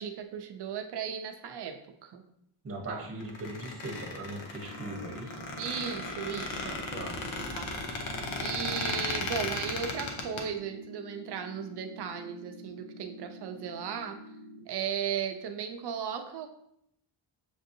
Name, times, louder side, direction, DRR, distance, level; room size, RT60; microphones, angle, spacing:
voice 1, 0.0-1.8 2.0-2.2 2.9-3.0 5.6-6.8 7.5-7.7 8.4-14.2 14.7-16.5, right 7 dB, 55° right, 6 dB, 0.5 m, -36 dB
voice 2, 2.6-5.4 6.9-7.1, right 1 dB, 30° right, -1 dB, 0.9 m, -39 dB
Squeak, 3.2-10.4, left 2 dB, 65° left, 0.8 m, -36 dB
sound 1, 4.6-14.6, equal, 25° left, 1.2 m, -48 dB
6.4 x 2.7 x 2.6 m, 0.75 s
wide cardioid pair, 170°, 49 cm